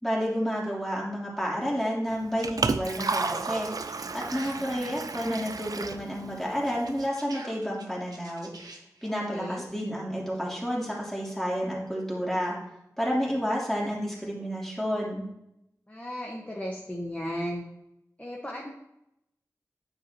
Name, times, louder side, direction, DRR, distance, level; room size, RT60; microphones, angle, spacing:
voice 1, 0.0-3.7 4.1-8.5 9.0-12.6 13.0-15.2, equal, 5° left, -4 dB, 3.2 m, -30 dB
Liquid, 2.1-7.1, right 4 dB, 70° right, 0.4 m, -33 dB
sound 1, 2.4-4.5 4.8-4.9 6.7-9.1, right 2 dB, 90° right, 1.1 m, -44 dB
voice 2, 9.0-9.7 15.9-17.6 18.2-18.7, equal, 20° left, -3 dB, 1.3 m, -35 dB
9.2 x 7.4 x 2.9 m, 0.82 s
wide cardioid pair, 45°, 6 cm